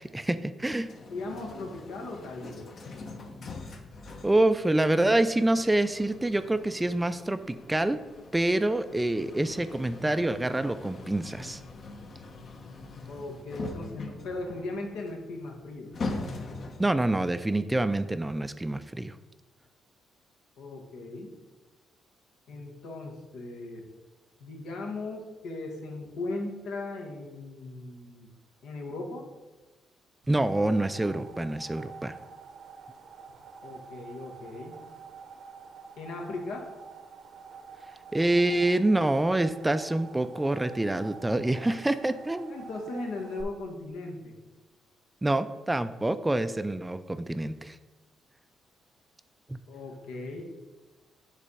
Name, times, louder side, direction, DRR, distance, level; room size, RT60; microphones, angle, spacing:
voice 1, 0.0-0.9 4.2-8.0 8.3-11.6 16.8-19.1 30.3-32.2 38.1-42.5 45.2-47.8 49.5-49.6, right 1 dB, 10° right, 11 dB, 0.3 m, -26 dB
sound 1, 0.6-17.0, left 3 dB, 50° left, 0.9 m, -42 dB
voice 2, 1.1-2.7 13.0-15.9 20.6-21.3 22.5-23.8 24.4-28.3 28.6-29.3 33.6-34.8 36.0-36.7 42.5-44.3 49.7-50.4, left 2 dB, 80° left, 2 dB, 1.4 m, -38 dB
sound 2, 30.2-43.4, right 5 dB, 65° right, 0.8 m, -48 dB
8.1 x 3.3 x 5.5 m, 1.2 s
cardioid pair, 90°, 0 cm